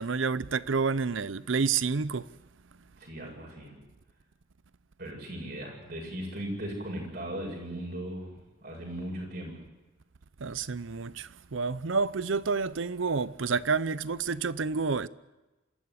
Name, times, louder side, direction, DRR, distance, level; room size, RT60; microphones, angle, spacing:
voice 1, 0.0-2.3 10.4-15.1, right 5 dB, 80° right, 0.7 m, -29 dB
voice 2, 3.0-3.7 5.0-9.6, right 1 dB, 50° right, 7.4 m, -38 dB
26.5 x 14.0 x 9.8 m
head